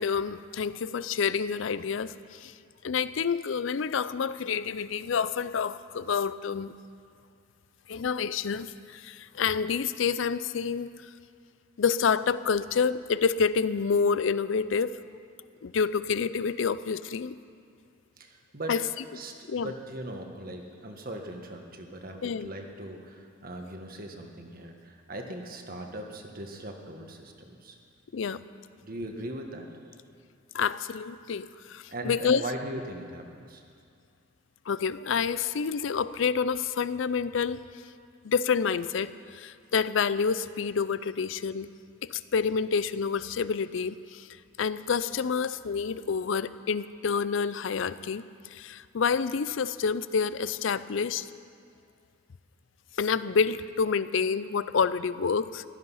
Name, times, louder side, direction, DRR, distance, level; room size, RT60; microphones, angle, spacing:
voice 1, 0.0-2.5 2.8-6.7 7.9-10.9 11.8-15.0 15.6-17.4 18.7-18.8 19.5-19.7 22.2-22.5 28.1-28.4 30.5-32.4 34.7-37.7 38.2-41.7 42.0-44.3 44.6-48.2 48.5-51.3 53.0-55.6, left 6 dB, 70° left, 16 dB, 0.5 m, -28 dB
voice 2, 18.2-18.8 19.1-27.8 28.8-29.8 31.9-33.6, right 1 dB, 45° right, 3 dB, 1.5 m, -39 dB
16.0 x 13.0 x 5.7 m, 2.3 s
head